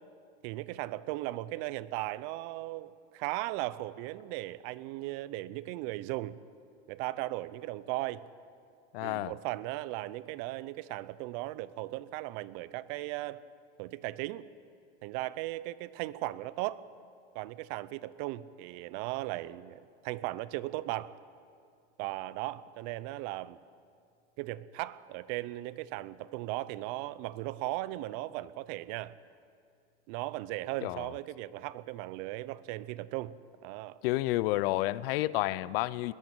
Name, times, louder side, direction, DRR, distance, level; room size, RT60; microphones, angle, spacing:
voice 1, 0.4-6.4 6.9-8.2 9.0-13.4 13.8-14.5 15.0-16.8 17.3-21.2 22.0-23.6 24.4-29.2 30.1-33.4 33.6-34.0, right 17 dB, 50° right, 0.8 m, -37 dB
voice 2, 8.9-9.3 30.8-31.1 34.0-36.1, left 17 dB, 60° left, 0.7 m, -30 dB
21.0 x 14.0 x 8.9 m
hypercardioid pair, 115°, 34 cm